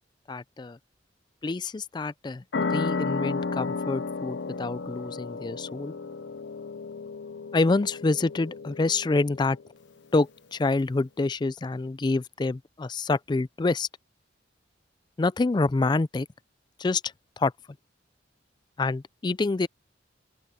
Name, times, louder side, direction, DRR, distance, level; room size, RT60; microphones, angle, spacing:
voice 1, 0.3-0.8 1.4-5.9 7.5-9.6 10.1-13.9 15.2-16.3 16.8-17.5 18.8-19.7, left 3 dB, 25° left, 0.3 m, -27 dB
sound 1, 2.5-9.7, left 4 dB, 75° left, 0.7 m, -33 dB
open air
head